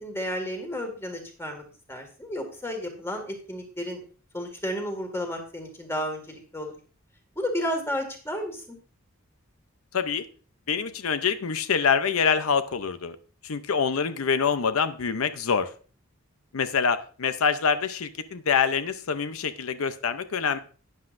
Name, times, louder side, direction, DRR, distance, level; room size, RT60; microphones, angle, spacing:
voice 1, 0.0-1.6 1.9-4.0 4.3-6.2 6.5-6.7 7.4-8.8, equal, 10° left, 4 dB, 1.9 m, -32 dB
voice 2, 9.9-10.2 10.7-13.2 13.4-15.7 16.5-20.6, left 6 dB, 85° left, 11 dB, 0.6 m, -25 dB
11.5 x 9.7 x 2.6 m, 0.39 s
head